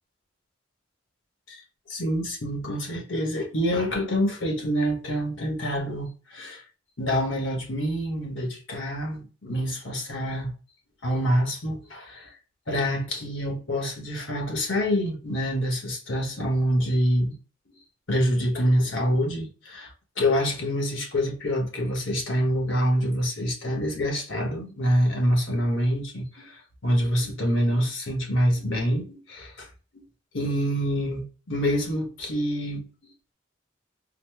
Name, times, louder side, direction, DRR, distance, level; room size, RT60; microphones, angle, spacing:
voice 1, 1.9-6.6 7.0-10.5 11.0-12.3 12.7-17.4 17.7-17.8 18.1-29.7 29.9-30.1 30.3-33.3, equal, 85° left, 1.2 m, -26 dB
4.0 x 2.0 x 3.2 m
head